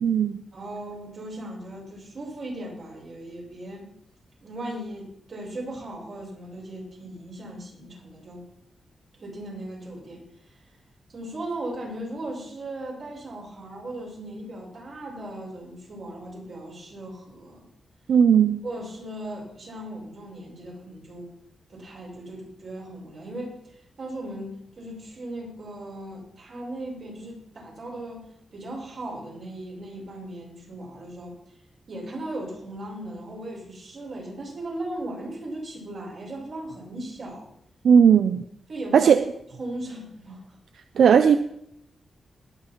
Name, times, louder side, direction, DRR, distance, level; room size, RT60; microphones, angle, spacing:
voice 1, 0.0-0.4 18.1-18.6 37.8-38.5 38.9-39.3 41.0-41.4, right 7 dB, 80° right, 11 dB, 0.5 m, -17 dB
voice 2, 0.5-3.9 4.4-8.4 9.1-10.6 11.1-17.7 18.6-21.3 21.7-31.3 31.9-37.5 38.7-39.1 39.6-40.4, right 1 dB, 55° right, -2 dB, 5.8 m, -37 dB
20.5 x 8.0 x 4.4 m, 0.76 s
wide cardioid pair, 140°, 0 cm